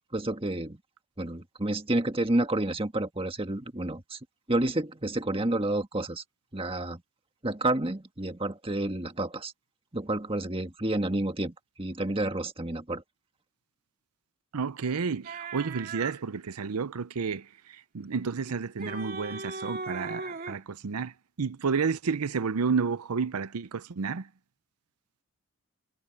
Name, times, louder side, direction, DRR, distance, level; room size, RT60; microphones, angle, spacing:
voice 1, 0.1-0.8 1.2-4.2 4.5-6.2 6.5-7.0 7.4-9.5 9.9-13.0, right 1 dB, 25° right, 1.6 m, -30 dB
voice 2, 14.5-21.1 21.4-24.3, right 5 dB, 90° right, 0.6 m, -31 dB
sound 1, 15.2-16.2 18.5-20.6, right 3 dB, 40° right, 3.0 m, -38 dB
head